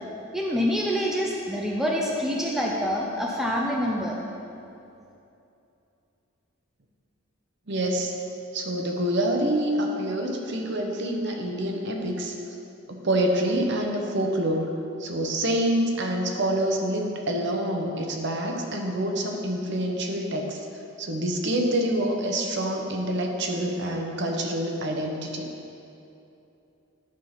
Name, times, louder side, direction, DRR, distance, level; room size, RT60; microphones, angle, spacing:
voice 1, 0.3-4.2, equal, ahead, -2 dB, 0.5 m, -26 dB
voice 2, 7.7-8.2 8.5-12.4 12.9-14.7 15.0-20.7 21.0-25.4, right 1 dB, 55° right, 2 dB, 0.8 m, -26 dB
10.5 x 3.7 x 5.6 m, 2.8 s
head